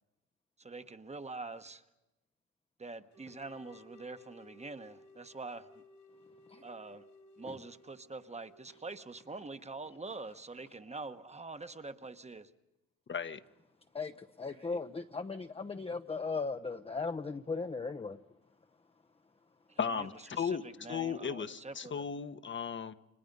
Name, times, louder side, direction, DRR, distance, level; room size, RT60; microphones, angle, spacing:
voice 1, 0.6-1.8 2.8-5.8 6.6-7.0 7.4-12.5 19.7-22.0, right 3 dB, 20° right, 1.2 m, -45 dB
sound 1, 3.1-9.9, left 2 dB, 65° left, 1.9 m, -59 dB
voice 2, 13.1-13.4 19.8-22.9, left 6 dB, 40° left, 1.1 m, -36 dB
voice 3, 13.9-18.2, left 4 dB, 20° left, 0.8 m, -37 dB
30.0 x 25.0 x 5.4 m
cardioid pair, 90°, 30 cm